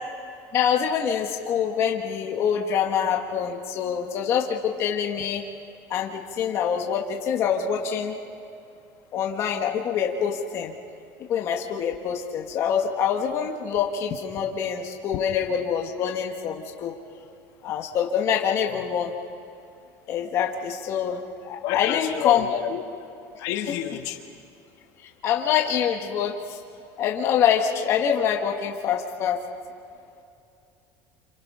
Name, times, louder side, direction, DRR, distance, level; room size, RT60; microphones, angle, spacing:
voice 1, 0.5-5.4 5.9-8.2 9.1-10.7 11.3-16.9 17.6-19.1 20.1-22.6 23.7-23.8 25.2-26.6 27.0-29.4, left 8 dB, 35° left, 1 dB, 1.6 m, -25 dB
voice 2, 21.6-22.8 23.4-24.2, left 11 dB, 60° left, 4 dB, 1.8 m, -29 dB
30.0 x 27.0 x 5.6 m, 2.6 s
cardioid pair, 170°, 8 cm